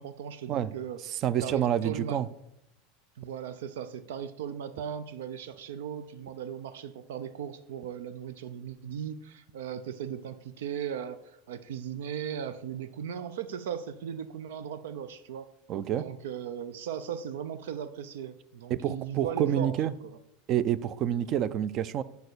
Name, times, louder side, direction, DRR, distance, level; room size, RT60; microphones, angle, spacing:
voice 1, 0.0-2.2 3.2-15.5 15.9-20.2, right 8 dB, 90° right, 0.5 m, -37 dB
voice 2, 1.2-2.3 15.7-16.1 18.7-19.9 20.5-22.0, right 10 dB, 35° right, 0.4 m, -28 dB
8.2 x 4.7 x 6.8 m
supercardioid pair, 155°, 0 cm